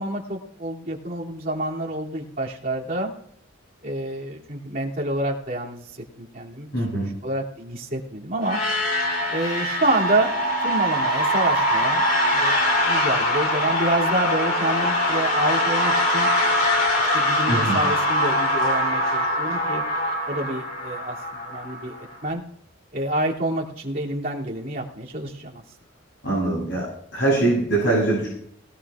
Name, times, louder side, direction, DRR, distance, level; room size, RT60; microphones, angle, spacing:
voice 1, 0.0-3.1 3.8-5.9 6.2-8.6 9.3-10.3 10.6-12.0 12.3-12.6 12.8-16.3 17.0-19.8 20.3-22.4 22.9-25.6, right 1 dB, 45° right, -4 dB, 2.8 m, -28 dB
voice 2, 6.7-7.1 17.5-17.8 26.2-28.3, right 2 dB, 65° left, -5 dB, 7.7 m, -22 dB
sound 1, 8.4-22.1, equal, 45° left, 3.2 m, -23 dB
19.5 x 18.5 x 2.5 m, 0.70 s
head